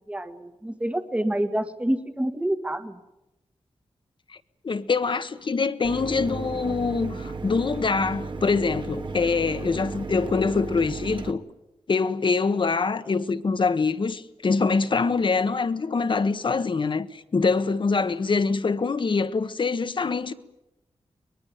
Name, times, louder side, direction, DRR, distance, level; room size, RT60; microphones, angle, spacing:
voice 1, 0.1-3.0, right 1 dB, 10° right, 1.6 m, -27 dB
voice 2, 4.6-11.4 11.9-20.3, left 4 dB, 50° left, 1.4 m, -24 dB
Mechanisms, 5.8-11.3, right 3 dB, 50° right, 1.9 m, -34 dB
23.5 x 21.0 x 9.2 m
wide cardioid pair, 110°, 11 cm